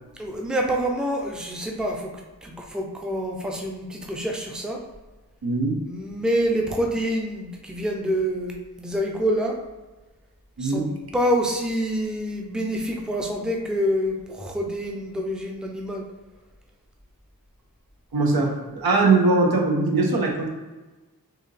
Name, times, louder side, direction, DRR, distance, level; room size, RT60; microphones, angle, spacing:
voice 1, 0.2-2.1 2.4-4.8 5.9-9.6 10.6-10.9 11.1-16.0, equal, ahead, 0 dB, 0.6 m, -26 dB
voice 2, 5.4-5.7 10.6-10.9 18.1-20.5, right 3 dB, 75° right, 0 dB, 0.9 m, -21 dB
4.8 x 2.8 x 3.2 m, 1.2 s
wide cardioid pair, 85°, 37 cm